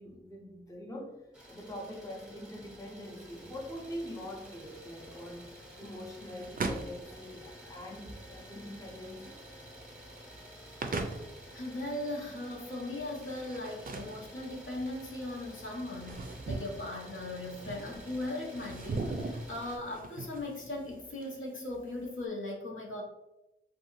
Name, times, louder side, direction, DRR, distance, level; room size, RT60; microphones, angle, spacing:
voice 1, 0.0-9.4, equal, 15° left, -1 dB, 0.5 m, -44 dB
Idling, 1.3-19.8, equal, 5° right, 0.9 m, -51 dB
sound 1, 3.0-22.2, right 3 dB, 45° right, 0.4 m, -42 dB
voice 2, 11.5-23.0, left 2 dB, 75° left, -2 dB, 0.7 m, -38 dB
2.6 x 2.2 x 2.9 m, 0.97 s
wide cardioid pair, 70°, 21 cm